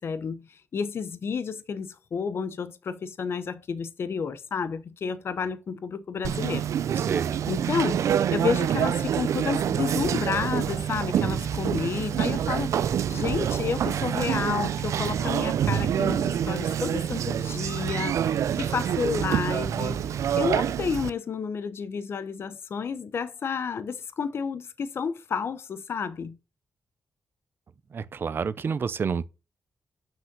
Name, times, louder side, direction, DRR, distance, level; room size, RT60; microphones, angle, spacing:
voice 1, 0.0-6.7 7.5-20.0 20.4-26.4, left 6 dB, 55° left, 0.7 m, -31 dB
Conversation, 6.2-21.1, right 9 dB, 90° right, 0.5 m, -26 dB
voice 2, 6.9-7.4 27.9-29.2, right 6 dB, 45° right, 0.6 m, -29 dB
6.1 x 5.5 x 6.1 m
wide cardioid pair, 130°, 5 cm